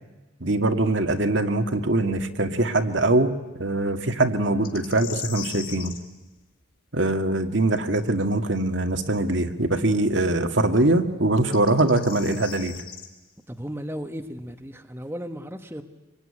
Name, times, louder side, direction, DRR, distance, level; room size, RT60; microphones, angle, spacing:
voice 1, 0.4-3.3 3.6-5.9 6.9-12.8, right 2 dB, 60° right, 6 dB, 1.8 m, -22 dB
sound 1, 4.6-6.0 9.2-9.3 11.4-13.1, left 9 dB, 45° left, 3.6 m, -38 dB
voice 2, 13.5-15.8, equal, 10° right, 6 dB, 1.1 m, -35 dB
26.5 x 23.0 x 9.9 m, 1.1 s
head